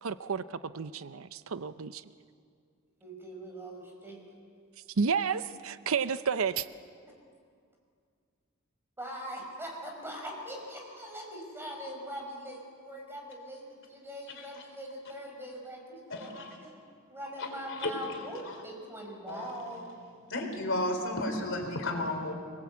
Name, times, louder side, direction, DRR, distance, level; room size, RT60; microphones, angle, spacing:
voice 1, 0.0-2.1 5.0-6.7, right 6 dB, 70° right, 13 dB, 0.6 m, -31 dB
voice 2, 3.0-4.2 9.0-16.3 16.6-16.8 17.1-19.9, equal, 10° right, 1 dB, 5.4 m, -42 dB
voice 3, 16.1-16.6 17.4-18.6 19.3-19.7 20.3-22.3, left 2 dB, 65° left, 4 dB, 4.0 m, -34 dB
25.0 x 19.5 x 8.5 m, 2.2 s
head